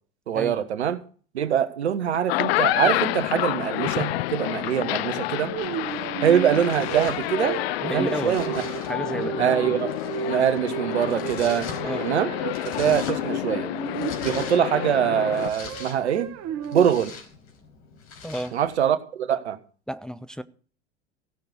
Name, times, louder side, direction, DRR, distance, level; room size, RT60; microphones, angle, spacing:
voice 1, 0.3-1.0 1.3-5.5 6.2-7.6 7.8-8.6 9.4-9.9 10.3-11.7 12.0-12.3 12.8-13.7 14.2-16.3 16.7-17.1 18.5-19.6, right 9 dB, 80° right, 1.4 m, -23 dB
sound 1, 2.1-15.5, left 17 dB, 65° left, 0.5 m, -29 dB
sound 2, 5.5-16.9, right 10 dB, 50° right, 1.9 m, -34 dB
Domestic sounds home sounds, 5.6-18.8, left 5 dB, 40° left, 4.8 m, -43 dB
voice 2, 7.8-8.4 8.9-9.8 11.8-12.0 18.2-18.6 19.9-20.4, equal, ahead, 0.7 m, -32 dB
16.0 x 6.8 x 8.0 m
hypercardioid pair, 85°, 33 cm